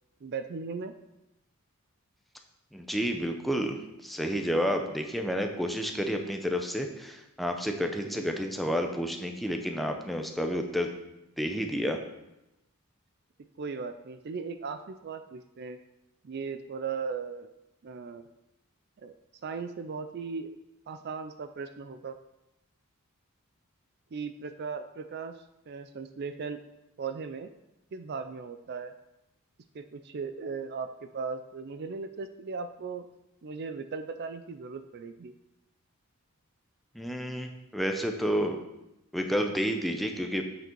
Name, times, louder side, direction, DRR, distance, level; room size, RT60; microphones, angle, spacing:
voice 1, 0.2-0.9 7.9-8.3 13.6-15.8 16.2-17.5 17.8-18.3 19.0-19.1 19.4-20.5 20.9-22.2 24.1-26.6 27.0-27.5 27.9-28.9 29.7-33.1 33.4-35.3, right 5 dB, 45° right, 9 dB, 0.4 m, -37 dB
voice 2, 2.7-3.8 4.0-10.9 11.4-12.0 36.9-38.6 39.1-40.4, equal, ahead, 4 dB, 0.7 m, -30 dB
7.8 x 6.5 x 4.6 m, 0.92 s
head